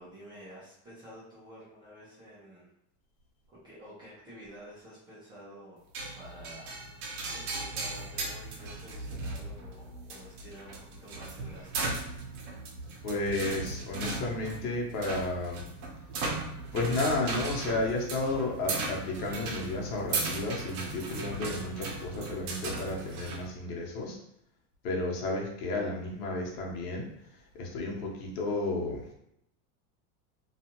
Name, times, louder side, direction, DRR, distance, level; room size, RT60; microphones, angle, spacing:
voice 1, 0.0-2.7 3.5-5.9 6.1-11.9, equal, 10° right, -10 dB, 0.4 m, -50 dB
sound 1, 5.9-23.5, right 3 dB, 75° right, 0.8 m, -37 dB
voice 2, 13.0-15.6 16.7-24.2 24.8-27.1 27.5-29.0, left 2 dB, 80° left, -1 dB, 1.0 m, -32 dB
2.4 x 2.4 x 2.9 m, 0.76 s
supercardioid pair, 160°, 46 cm